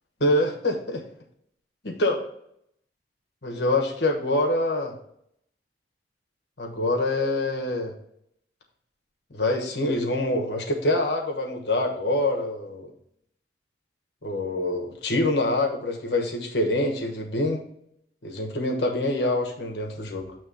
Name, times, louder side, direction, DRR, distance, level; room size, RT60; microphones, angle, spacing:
voice 1, 0.2-1.0 1.8-2.2 3.4-4.9 6.6-7.9 9.3-12.9 14.2-17.6 18.2-20.4, left 1 dB, 65° left, 2 dB, 1.2 m, -25 dB
7.9 x 3.0 x 5.8 m, 0.72 s
head